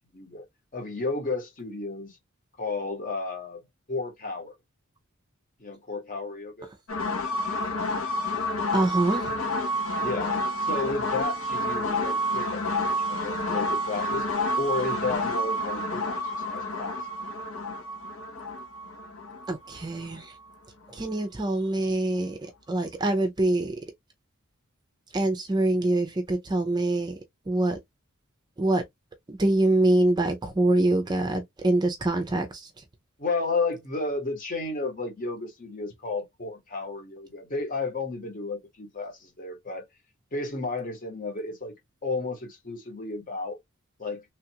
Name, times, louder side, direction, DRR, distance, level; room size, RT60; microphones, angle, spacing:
voice 1, 0.1-0.4 0.7-2.2 2.6-3.6 3.9-4.5 5.6-6.7 10.0-14.3 14.6-16.2 16.5-16.9 33.2-39.9 40.3-41.7 42.0-43.6 44.0-44.2, left 3 dB, 40° left, 1.1 m, -32 dB
sound 1, 6.9-20.5, left 1 dB, 80° left, 1.0 m, -29 dB
voice 2, 8.7-9.3 19.5-20.3 21.0-22.4 22.7-23.7 25.1-27.1 27.5-27.8 28.6-28.8 29.3-32.7, right 2 dB, 20° right, 0.4 m, -24 dB
3.2 x 2.4 x 2.8 m
head